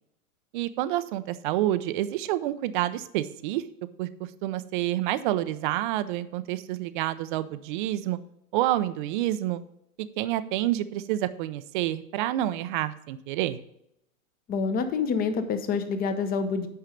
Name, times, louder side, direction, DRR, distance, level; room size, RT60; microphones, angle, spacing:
voice 1, 0.5-3.6 4.0-4.1 4.4-8.2 8.5-9.6 10.0-13.6, right 14 dB, 35° right, 14 dB, 0.6 m, -28 dB
voice 2, 14.5-16.7, left 5 dB, 20° left, 9 dB, 0.9 m, -27 dB
9.3 x 5.5 x 5.1 m, 0.78 s
hypercardioid pair, 130°, 44 cm